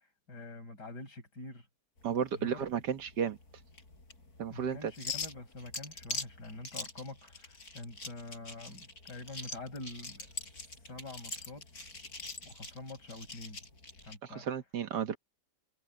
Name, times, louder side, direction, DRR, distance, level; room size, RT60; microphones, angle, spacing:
voice 1, 0.3-1.7 2.3-2.6 4.5-10.3 10.9-11.6 12.4-13.6 14.0-14.5, left 2 dB, 85° left, 6.4 m, -46 dB
sound 1, 2.0-14.2, left 3 dB, 65° left, 5.8 m, -44 dB
voice 2, 2.0-3.4 4.4-4.9 14.2-15.2, right 8 dB, 85° right, 1.9 m, -33 dB
omnidirectional pair, 1.8 m